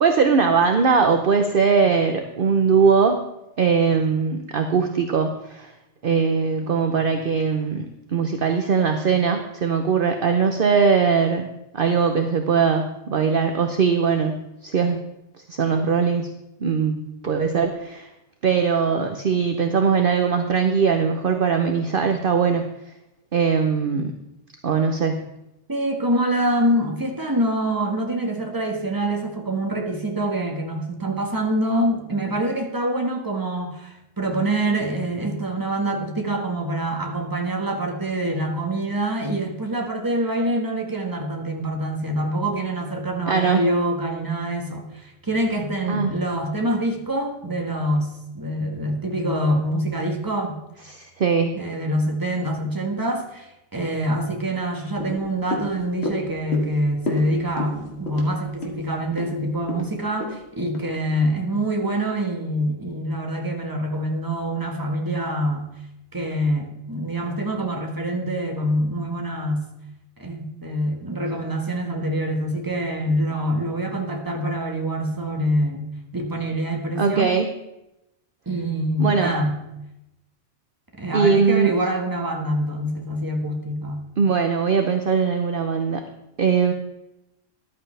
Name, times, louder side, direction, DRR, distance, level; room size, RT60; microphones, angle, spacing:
voice 1, 0.0-3.2 3.6-5.7 6.0-15.0 15.5-16.3 16.6-18.1 18.4-22.6 23.3-24.1 24.6-25.3 43.3-43.6 45.9-46.1 50.9-51.5 77.0-77.5 79.0-79.3 81.1-81.7 84.2-86.0 86.4-86.7, right 5 dB, 50° right, 5 dB, 1.0 m, -20 dB
voice 2, 25.7-50.6 51.5-65.7 66.1-69.7 70.2-75.9 76.1-77.3 78.4-79.6 80.9-84.1, right 1 dB, 15° right, 2 dB, 1.6 m, -25 dB
sound 1, 55.0-61.4 61.8-61.9, left 2 dB, 55° left, 2.2 m, -33 dB
14.0 x 11.5 x 3.3 m, 0.88 s
omnidirectional pair, 1.3 m